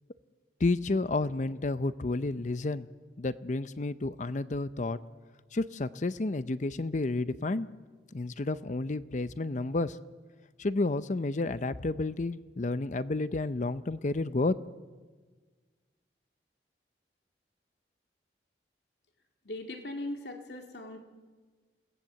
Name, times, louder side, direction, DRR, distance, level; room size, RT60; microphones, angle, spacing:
voice 1, 0.6-2.9 3.2-5.0 5.5-7.7 8.1-10.0 10.6-14.6, left 2 dB, 45° left, 14 dB, 0.6 m, -31 dB
voice 2, 19.4-21.0, left 1 dB, 70° left, 3 dB, 2.3 m, -39 dB
29.0 x 18.5 x 7.6 m, 1.4 s
head